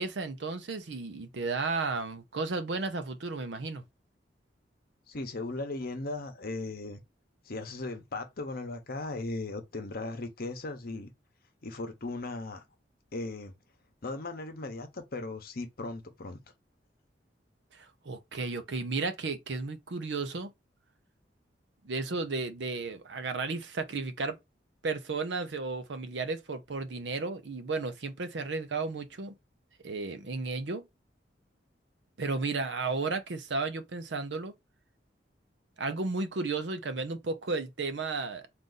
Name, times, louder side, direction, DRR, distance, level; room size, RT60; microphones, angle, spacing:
voice 1, 0.0-3.8 17.7-20.5 21.8-24.4 24.8-29.3 29.8-30.8 32.2-34.5 35.8-38.5, right 3 dB, 75° right, 0.6 m, -33 dB
voice 2, 5.1-7.0 7.5-11.1 11.6-12.6 13.1-13.5 14.0-16.4, left 2 dB, 55° left, 0.9 m, -37 dB
3.7 x 2.5 x 3.8 m
head